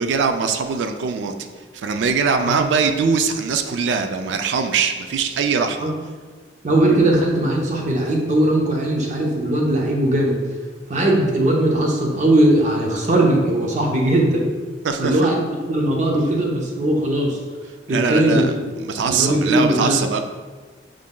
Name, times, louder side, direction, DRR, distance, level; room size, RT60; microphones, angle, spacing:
voice 1, 0.0-1.3 1.7-5.9 14.8-15.3 17.9-18.5 18.8-20.2, right 5 dB, 75° right, 7 dB, 0.3 m, -21 dB
voice 2, 6.6-10.4 10.9-14.5 15.0-17.4 17.9-18.6 19.0-20.0, right 1 dB, 40° right, -1 dB, 0.7 m, -19 dB
4.9 x 3.7 x 2.2 m, 1.4 s
head